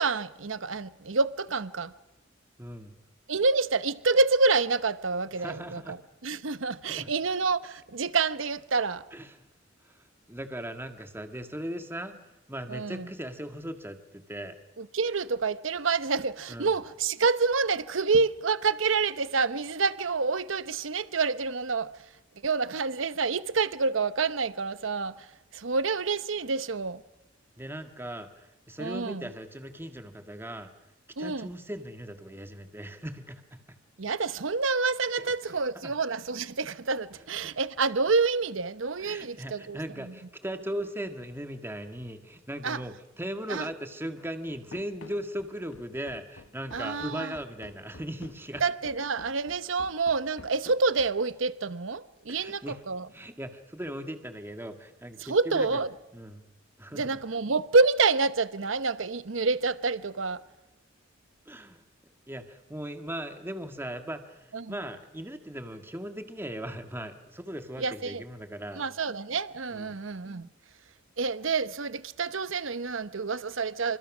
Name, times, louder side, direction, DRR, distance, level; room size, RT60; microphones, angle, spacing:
voice 1, 0.0-1.9 3.3-6.0 6.2-9.0 12.7-13.1 14.8-22.0 22.4-27.0 28.8-29.3 31.2-31.5 34.0-40.1 42.6-42.8 43.5-43.7 46.7-47.3 48.6-53.1 55.2-55.9 56.9-60.4 64.5-64.8 67.8-68.2 68.8-70.5 71.2-74.0, right 4 dB, 75° right, 0.9 m, -28 dB
voice 2, 2.6-2.9 5.4-6.0 6.9-7.1 9.1-9.3 9.8-12.2 12.5-14.6 16.5-16.7 27.6-30.7 31.2-33.6 35.2-35.3 35.8-35.9 39.0-48.6 52.3-52.8 53.1-55.7 56.1-56.4 56.8-57.2 61.5-61.8 62.3-68.8 69.7-70.0, right 1 dB, 10° right, 1.8 m, -38 dB
Run, 44.7-51.3, left 2 dB, 85° left, 1.8 m, -50 dB
28.5 x 25.5 x 6.2 m
head